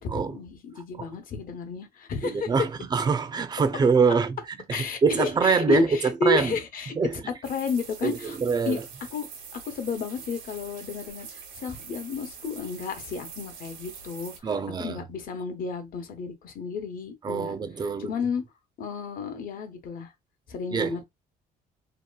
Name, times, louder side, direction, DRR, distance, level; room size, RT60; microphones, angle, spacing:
voice 1, 0.0-2.5 4.7-6.9 7.3-8.4 8.7-8.8 9.1-9.3 9.5-14.5 14.8-17.5 18.0-18.4 18.8-20.1 20.5-21.0, left 4 dB, 55° left, 0.9 m, -32 dB
voice 2, 2.2-4.4 4.7-5.9 6.2-6.5 7.0-7.1 8.0-8.8 14.4-15.0 17.2-18.1 20.7-21.0, right 5 dB, 25° right, 0.4 m, -24 dB
sound 1, 7.4-14.4, right 6 dB, 85° right, 1.0 m, -44 dB
2.8 x 2.5 x 2.2 m
cardioid pair, 110°, 17 cm